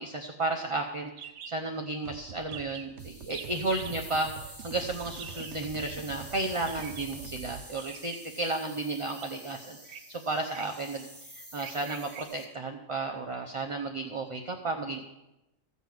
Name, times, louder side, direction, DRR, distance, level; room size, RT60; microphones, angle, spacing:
voice 1, 0.0-15.0, right 2 dB, 30° right, 2 dB, 0.6 m, -33 dB
sound 1, 1.2-1.6 1.8-1.9 2.2-2.3 2.5-2.9 3.3-4.0 5.2-5.6 6.6-7.2 7.7-8.4 9.1-9.3 9.8-10.0 10.5-10.8 11.6-12.2, right 8 dB, 85° right, 1.2 m, -45 dB
sound 2, 2.0-7.7, right 7 dB, 65° right, 1.0 m, -45 dB
sound 3, 3.0-12.5, equal, 10° left, 1.8 m, -49 dB
14.5 x 5.5 x 7.7 m, 0.95 s
omnidirectional pair, 1.4 m